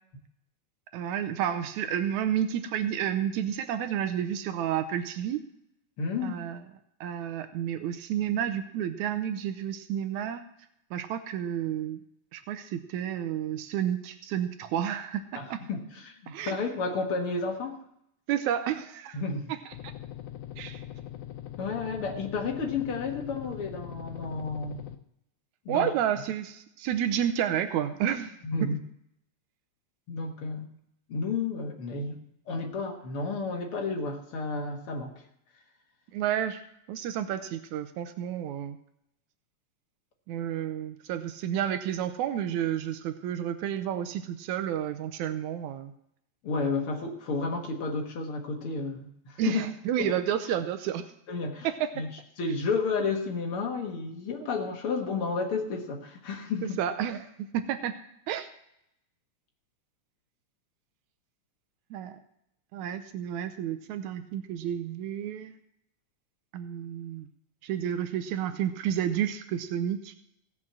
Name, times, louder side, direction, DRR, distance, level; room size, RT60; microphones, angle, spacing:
voice 1, 0.9-5.4 6.2-6.6 7.0-10.5 10.9-12.0 12.3-15.6 16.3-16.6 18.3-19.2 20.6-20.8 25.7-28.4 36.1-36.6 36.9-38.8 40.3-45.9 49.4-51.1 51.8-52.0 56.8-58.0 58.3-58.5 61.9-62.2 62.7-65.6 66.5-67.3 67.6-70.1, right 10 dB, 85° right, 9 dB, 2.1 m, -31 dB
voice 2, 6.0-6.4 15.3-17.8 19.1-19.5 21.6-24.9 25.7-25.9 28.4-28.8 30.1-30.7 31.1-35.1 46.4-49.6 50.0-50.1 51.3-51.7 52.0-52.1 52.4-56.8, left 4 dB, 55° left, 3 dB, 2.1 m, -31 dB
sound 1, 19.7-25.0, left 12 dB, 90° left, 2.2 m, -41 dB
16.5 x 6.0 x 7.4 m, 0.76 s
omnidirectional pair, 3.3 m